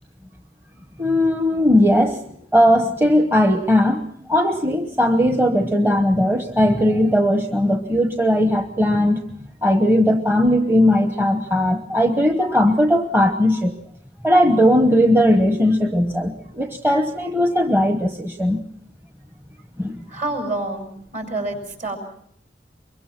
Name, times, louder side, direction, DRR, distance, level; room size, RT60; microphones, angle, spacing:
voice 1, 1.0-2.2 2.5-9.2 9.6-13.7 14.2-18.6 19.8-20.0, equal, 15° right, 5 dB, 1.0 m, -18 dB
voice 2, 20.1-22.0, right 2 dB, 45° right, 5 dB, 5.9 m, -28 dB
24.0 x 23.0 x 5.9 m, 0.67 s
head